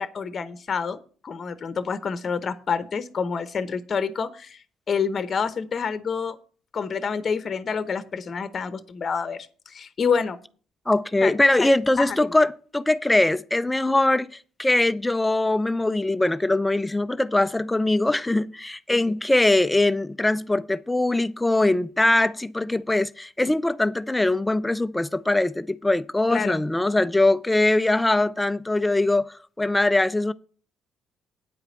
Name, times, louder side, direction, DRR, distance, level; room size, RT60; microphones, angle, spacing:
voice 1, 0.0-6.4 6.7-10.4 11.2-11.3 11.6-11.7 12.0-12.2 18.9-19.0 26.3-26.6, left 6 dB, 45° left, 0.8 m, -28 dB
voice 2, 10.9-30.3, left 2 dB, 15° left, 0.5 m, -22 dB
9.3 x 4.9 x 7.9 m
supercardioid pair, 65°, 0 cm